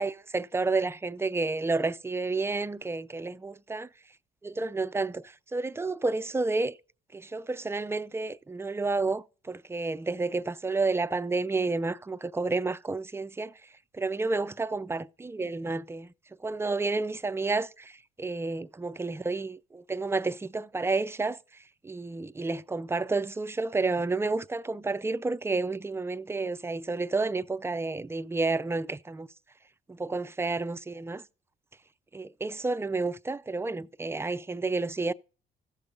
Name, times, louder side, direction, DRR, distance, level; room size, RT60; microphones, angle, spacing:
voice 1, 0.0-3.9 4.4-5.2 5.5-6.7 7.1-13.5 14.0-16.1 16.4-17.9 18.2-21.4 21.8-29.3 29.9-31.2 32.1-35.1, right 3 dB, 10° right, 0.4 m, -30 dB
14.5 x 6.8 x 3.7 m
cardioid pair, 90°, 20 cm